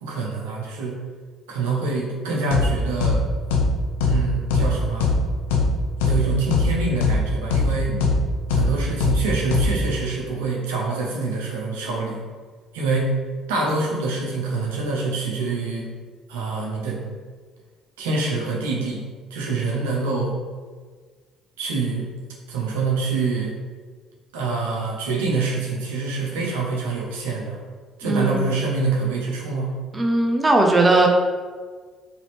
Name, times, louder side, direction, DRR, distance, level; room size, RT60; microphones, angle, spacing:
voice 1, 0.0-1.0 1.5-3.2 4.0-5.1 6.0-7.9 8.5-12.2 12.7-13.1 13.5-15.9 16.3-17.0 18.0-19.0 19.3-20.3 21.6-22.1 22.5-23.5 24.3-27.6 28.0-29.7, right 3 dB, 80° right, -3 dB, 0.8 m, -25 dB
sound 1, 2.5-2.7 3.0-3.2 3.5-3.7 4.0-4.2 4.5-4.7 5.0-5.2 5.5-5.7 6.0-6.2 6.5-6.7 7.0-7.2 7.5-7.7 8.0-8.2 8.5-8.7 9.0-9.2 9.5-9.7, left 4 dB, 80° left, 0.4 m, -19 dB
voice 2, 28.0-28.5 29.9-31.1, right 2 dB, 20° right, 1 dB, 0.6 m, -19 dB
4.0 x 2.9 x 3.1 m, 1.5 s
hypercardioid pair, 55°, 0 cm